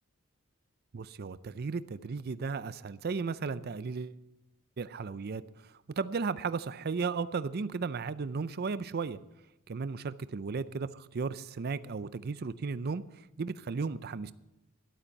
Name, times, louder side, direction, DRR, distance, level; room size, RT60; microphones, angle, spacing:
voice 1, 0.9-4.2 4.8-9.2 9.7-14.3, right 4 dB, 50° right, 15 dB, 0.5 m, -35 dB
13.0 x 11.5 x 5.3 m, 0.91 s
head